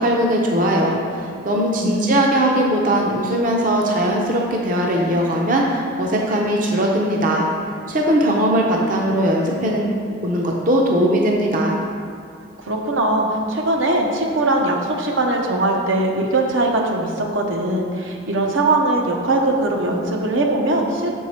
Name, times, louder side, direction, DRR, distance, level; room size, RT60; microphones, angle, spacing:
voice 1, 0.0-7.5 7.9-9.9 10.2-11.8, right 1 dB, 45° right, -1 dB, 0.6 m, -19 dB
voice 2, 12.6-21.2, right 2 dB, 80° right, 1 dB, 0.8 m, -20 dB
6.7 x 4.6 x 4.3 m, 2.3 s
head